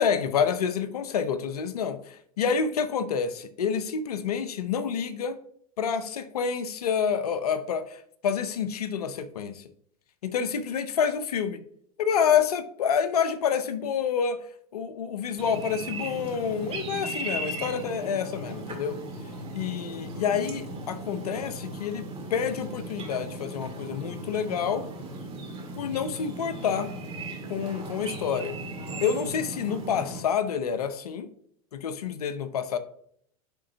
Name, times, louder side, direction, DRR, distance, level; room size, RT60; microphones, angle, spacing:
voice 1, 0.0-5.4 5.8-9.6 10.2-11.6 12.0-14.4 14.7-19.0 19.5-24.8 25.8-26.9 27.5-28.5 29.0-31.3 31.7-32.8, left 7 dB, 85° left, 12 dB, 0.7 m, -28 dB
sound 1, 15.4-30.2, right 2 dB, 30° right, 2.1 m, -37 dB
11.0 x 3.7 x 2.7 m, 0.66 s
hypercardioid pair, 100°, 19 cm